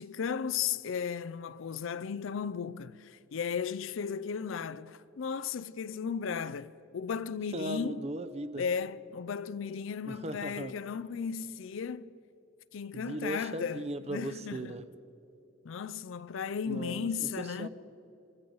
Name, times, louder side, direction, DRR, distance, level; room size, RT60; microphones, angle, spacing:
voice 1, 0.0-8.0 8.6-12.1 12.7-13.8 14.1-14.7 15.6-17.7, left 6 dB, 70° left, 0.4 m, -35 dB
voice 2, 7.5-8.6 10.0-10.7 12.9-14.9 16.7-17.7, right 1 dB, 30° right, 0.6 m, -38 dB
24.5 x 14.5 x 3.9 m
head